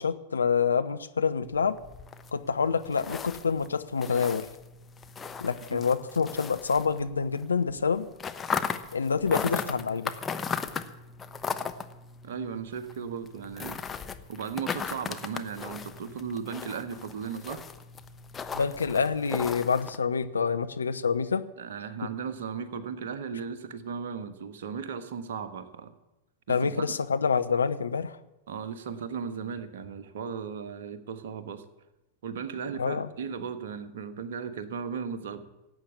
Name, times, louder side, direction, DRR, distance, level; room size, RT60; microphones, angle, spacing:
voice 1, 0.0-1.8 2.3-4.5 5.4-8.1 8.9-10.1 18.5-21.5 26.5-28.2 32.8-33.1, left 5 dB, 75° left, 11 dB, 0.8 m, -27 dB
sound 1, 1.4-7.4 7.7-20.0, left 6 dB, 20° left, 1.0 m, -37 dB
voice 2, 12.2-13.8 14.3-17.6 21.6-25.9 26.5-26.9 28.5-31.6 32.2-35.4, right 6 dB, 60° right, 10 dB, 1.4 m, -36 dB
17.5 x 8.3 x 8.5 m, 0.97 s
figure-of-eight pair, 90°, 0 cm